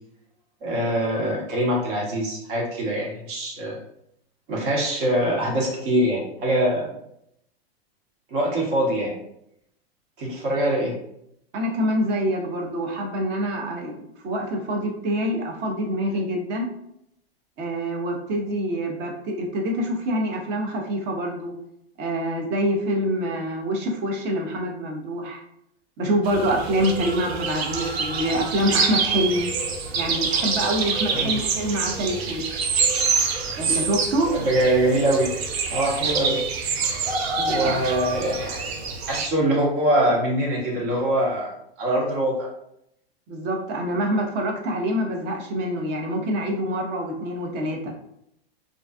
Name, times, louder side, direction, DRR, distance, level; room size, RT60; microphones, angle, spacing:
voice 1, 0.6-3.7 4.5-6.9 8.3-9.1 10.2-10.9 31.1-31.4 34.3-35.3 35.7-36.4 37.5-38.6 39.1-42.5, right 1 dB, 55° right, -2 dB, 1.0 m, -23 dB
voice 2, 11.5-16.7 17.6-21.5 22.0-25.4 26.0-29.5 29.9-32.5 33.6-34.3 37.4-37.9 43.3-47.9, equal, 35° right, 2 dB, 0.6 m, -26 dB
sound 1, 26.2-39.3, right 5 dB, 75° right, 0.5 m, -26 dB
2.5 x 2.3 x 2.3 m, 0.77 s
hypercardioid pair, 115°, 31 cm